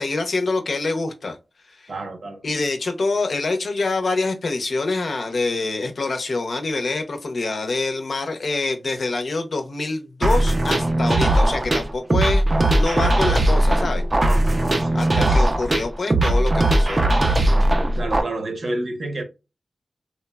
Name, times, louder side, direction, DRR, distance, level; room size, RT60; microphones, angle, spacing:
voice 1, 0.0-1.4 1.8-1.9 2.4-12.4 12.7-14.0 14.9-17.0, left 3 dB, 65° left, 0.6 m, -25 dB
voice 2, 1.9-2.4 14.2-15.5 17.9-19.2, right 2 dB, 65° right, 0.8 m, -30 dB
sound 1, 10.2-18.2, right 1 dB, 35° right, 0.4 m, -19 dB
3.1 x 2.1 x 2.2 m
wide cardioid pair, 105°, 0 cm